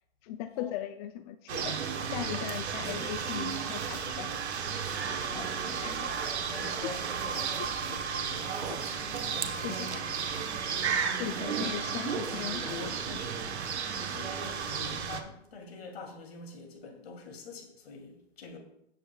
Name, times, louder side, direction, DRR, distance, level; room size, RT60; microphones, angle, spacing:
voice 1, 0.2-1.8 2.1-4.4 5.8-6.0 7.6-7.7 9.6-10.0 11.1-13.4, left 12 dB, 40° left, 0.5 m, -38 dB
sound 1, 1.5-15.2, right 6 dB, 80° right, 1.2 m, -33 dB
voice 2, 5.3-8.8 9.3-10.6 11.6-11.7 13.9-18.6, left 4 dB, 65° left, 2.8 m, -46 dB
16.0 x 7.5 x 2.3 m
hypercardioid pair, 120°, 33 cm